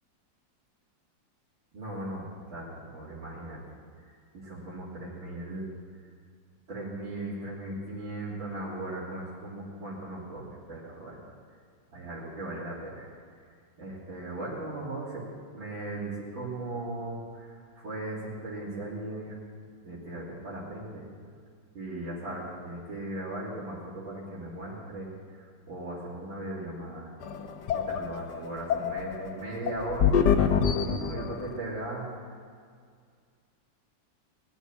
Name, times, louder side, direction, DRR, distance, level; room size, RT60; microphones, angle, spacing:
voice 1, 1.7-3.6 4.3-5.7 6.7-11.2 11.9-13.1 13.8-15.3 15.5-19.3 19.8-21.1 21.7-25.1 25.4-27.1 27.7-30.3 30.6-32.1, right 2 dB, 90° right, -9 dB, 4.0 m, -38 dB
sound 1, 27.2-31.6, left 7 dB, 65° left, 1.4 m, -26 dB
20.0 x 7.2 x 9.7 m, 2.1 s
omnidirectional pair, 2.1 m